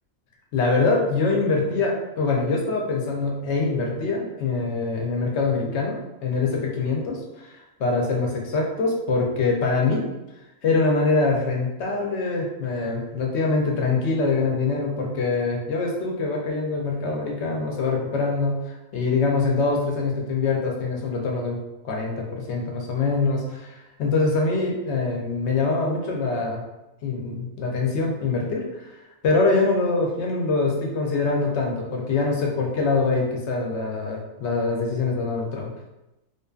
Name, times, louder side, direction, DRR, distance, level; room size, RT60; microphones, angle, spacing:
voice 1, 0.5-10.0 10.6-18.6 18.9-21.6 21.8-26.6 27.0-28.9 29.2-35.7, left 3 dB, 65° left, 0 dB, 0.8 m, -24 dB
2.6 x 2.4 x 2.3 m, 0.96 s
omnidirectional pair, 1.4 m